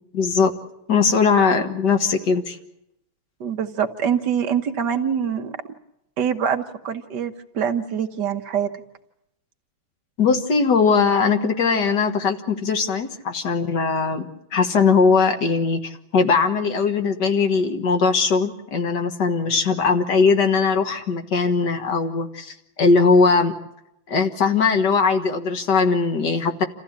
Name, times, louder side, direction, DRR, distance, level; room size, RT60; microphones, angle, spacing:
voice 1, 0.1-0.5 0.9-2.6 10.2-23.5 24.1-26.7, left 4 dB, 60° left, 6 dB, 2.0 m, -20 dB
voice 2, 3.4-5.5 6.2-8.7, right 8 dB, 60° right, 6 dB, 1.6 m, -24 dB
27.5 x 15.0 x 8.8 m, 0.85 s
omnidirectional pair, 2.2 m